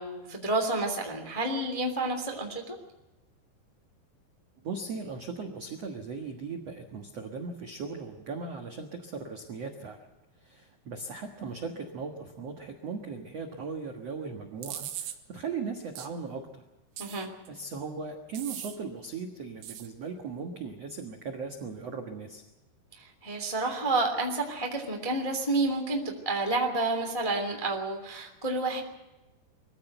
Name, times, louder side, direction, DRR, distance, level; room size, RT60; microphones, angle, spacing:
voice 1, 0.0-2.8 17.0-17.3 23.2-28.8, right 2 dB, 15° left, 2 dB, 1.1 m, -30 dB
voice 2, 4.6-10.0 10.4-16.6 17.5-22.4, right 4 dB, 65° right, 3 dB, 1.6 m, -38 dB
sound 1, 14.6-15.2 16.0-16.1 17.0-17.5 18.3-18.8 19.6-19.9, right 11 dB, 85° right, 3.7 m, -39 dB
22.5 x 15.0 x 7.9 m, 1.1 s
omnidirectional pair, 5.3 m